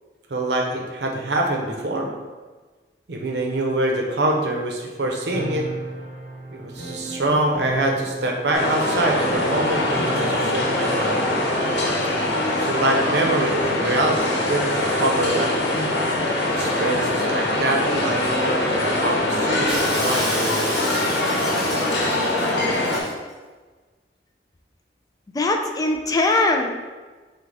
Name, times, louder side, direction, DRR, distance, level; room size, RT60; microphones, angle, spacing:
voice 1, 0.3-2.1 3.1-5.7 6.5-11.3 12.6-15.5 16.5-18.7 19.0-20.9, right 1 dB, 70° right, 1 dB, 0.7 m, -25 dB
sound 1, 5.3-13.7, right 2 dB, 70° left, 1.1 m, -36 dB
sound 2, 8.5-23.0, left 1 dB, 90° left, 0.9 m, -23 dB
Shatter, 19.7-23.1, equal, 5° right, 1.2 m, -30 dB
voice 2, 25.3-26.7, left 2 dB, 20° left, 3 dB, 0.3 m, -20 dB
6.0 x 2.2 x 3.4 m, 1.3 s
head